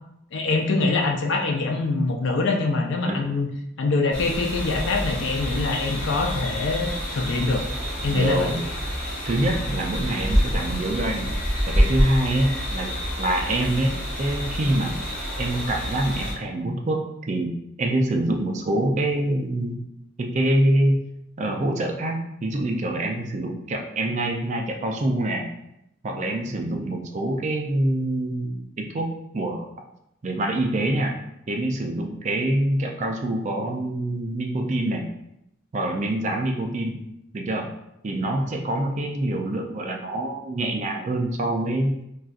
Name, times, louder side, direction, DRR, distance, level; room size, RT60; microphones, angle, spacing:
voice 1, 0.3-3.5 3.8-7.7 8.0-8.6, left 3 dB, 60° left, 3 dB, 0.4 m, -24 dB
sound 1, 4.1-16.3, equal, 10° left, 1.1 m, -27 dB
voice 2, 8.1-8.6 9.2-11.3 11.7-13.9 14.2-14.9 15.4-17.5 17.8-19.8 20.2-21.0 21.4-25.4 26.0-29.7 30.2-31.2 31.5-35.1 35.7-37.0 37.3-37.7 38.0-41.9, right 1 dB, 35° right, 2 dB, 0.3 m, -25 dB
3.9 x 2.4 x 2.4 m, 0.82 s
head